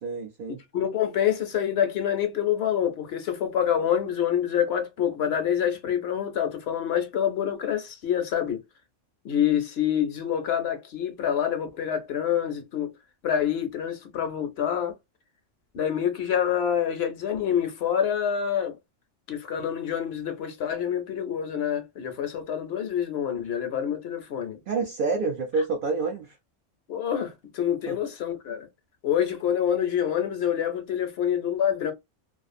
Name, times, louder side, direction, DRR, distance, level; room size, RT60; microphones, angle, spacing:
voice 1, 0.0-0.6 24.7-26.3 27.9-28.0, right 4 dB, 60° right, 0.5 m, -28 dB
voice 2, 0.7-8.6 9.2-12.9 13.2-14.9 15.7-18.8 19.3-24.6 26.9-28.7 29.0-31.9, left 9 dB, 65° left, 0.7 m, -26 dB
2.4 x 2.4 x 2.5 m
omnidirectional pair, 1.3 m